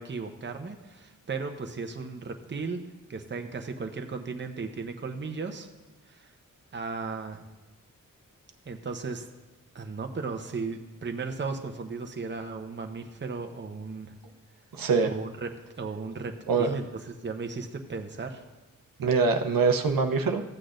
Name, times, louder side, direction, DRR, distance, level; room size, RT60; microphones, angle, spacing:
voice 1, 0.0-5.7 6.1-6.3 6.7-7.4 8.7-9.3 9.7-14.2 15.0-15.5 15.8-18.4, right 4 dB, 35° right, 5 dB, 0.8 m, -36 dB
voice 2, 14.7-15.1 16.5-16.7 19.0-20.4, right 4 dB, 85° right, 5 dB, 0.8 m, -24 dB
14.5 x 8.3 x 2.5 m, 1.2 s
wide cardioid pair, 120°, 33 cm